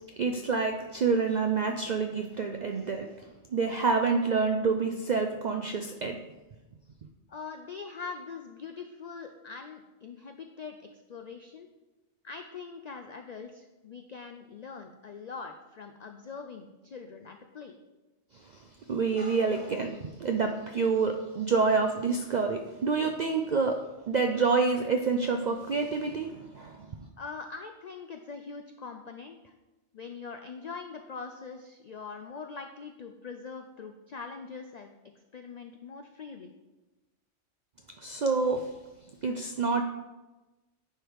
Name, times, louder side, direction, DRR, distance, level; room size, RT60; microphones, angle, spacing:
voice 1, 0.2-3.1 3.5-6.2 18.4-18.5 18.9-27.1 38.0-38.8 39.2-39.8, right 4 dB, 70° right, 5 dB, 0.4 m, -28 dB
voice 2, 7.3-11.7 12.2-17.8 27.2-29.5 29.9-34.9 35.3-36.5, left 5 dB, 75° left, 5 dB, 0.3 m, -43 dB
10.0 x 3.4 x 4.6 m, 1.1 s
omnidirectional pair, 1.3 m